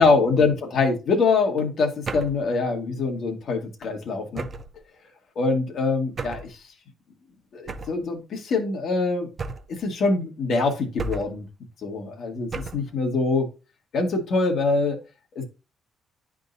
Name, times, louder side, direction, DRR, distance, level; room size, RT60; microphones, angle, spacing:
voice 1, 0.0-4.4 5.3-6.6 7.5-9.3 9.7-11.4 11.8-13.5 13.9-15.0 15.3-15.4, left 3 dB, 65° left, 1.6 m, -24 dB
sound 1, 2.0-2.5 4.3-4.8 6.2-6.5 7.7-8.0 9.4-9.8 11.0-11.5 12.5-12.9, right 3 dB, 40° right, 0.5 m, -33 dB
10.5 x 3.7 x 2.6 m
cardioid pair, 90°, 0 cm